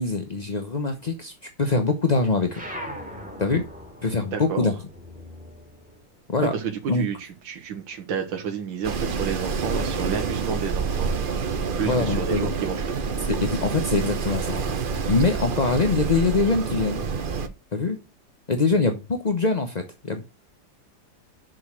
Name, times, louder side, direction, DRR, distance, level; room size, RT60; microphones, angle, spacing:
voice 1, 0.0-2.6 3.4-3.6 4.0-4.7 6.3-6.5 6.9-7.1 11.8-12.5 13.4-14.6 15.1-17.0 17.7-18.0 18.5-20.2, left 3 dB, 40° left, 0.5 m, -23 dB
sound 1, 2.5-7.4 7.7-9.1, equal, 5° right, 2.5 m, -41 dB
voice 2, 4.3-4.7 6.5-12.8, right 7 dB, 85° right, 1.9 m, -31 dB
Wind, 8.8-17.5, right 5 dB, 55° right, 0.5 m, -27 dB
6.5 x 6.3 x 6.2 m
omnidirectional pair, 2.1 m